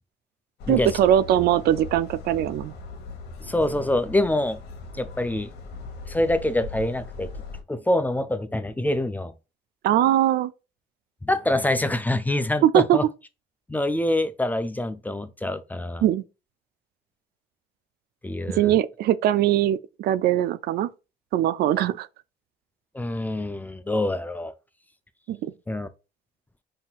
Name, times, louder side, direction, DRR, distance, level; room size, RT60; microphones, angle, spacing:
sound 1, 0.6-7.6, left 4 dB, 75° left, 1.1 m, -39 dB
voice 1, 0.7-2.7 9.8-10.5 12.6-13.0 16.0-16.2 18.6-20.9 21.3-22.1 25.3-25.5, right 11 dB, 65° right, 0.4 m, -21 dB
voice 2, 3.4-4.6 4.9-5.5 6.1-7.3 7.7-9.3 11.2-13.0 13.7-16.0 18.2-18.7 22.9-24.5 25.7-25.9, left 1 dB, 10° left, 0.3 m, -25 dB
5.5 x 2.8 x 2.4 m
cardioid pair, 110°, 17 cm